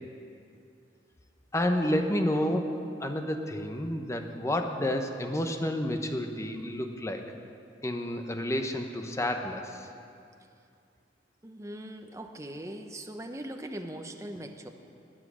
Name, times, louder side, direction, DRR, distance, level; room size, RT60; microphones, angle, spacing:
voice 1, 1.5-7.2 7.8-9.9, left 1 dB, 15° left, 5 dB, 0.9 m, -30 dB
voice 2, 11.4-14.7, right 1 dB, 15° right, 5 dB, 0.8 m, -40 dB
20.0 x 7.6 x 6.3 m, 2.5 s
head